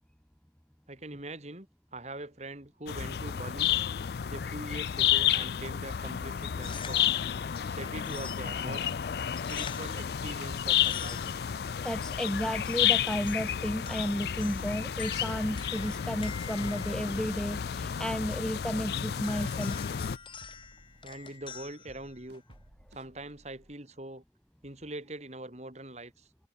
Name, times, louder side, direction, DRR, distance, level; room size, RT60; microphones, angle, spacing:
voice 1, 0.9-1.7 1.9-3.7 4.3-7.1 7.7-8.8 9.5-11.2 21.0-22.4 22.9-24.2 24.6-26.3, right 2 dB, 40° right, 3.1 m, -42 dB
sound 1, 2.9-20.2, left 9 dB, 60° left, 0.4 m, -31 dB
sound 2, 6.4-22.7, left 6 dB, 30° left, 6.6 m, -48 dB
voice 2, 11.8-19.9, equal, 5° left, 0.7 m, -33 dB
sound 3, 11.9-18.1 18.5-23.7, right 1 dB, 70° right, 5.4 m, -58 dB
head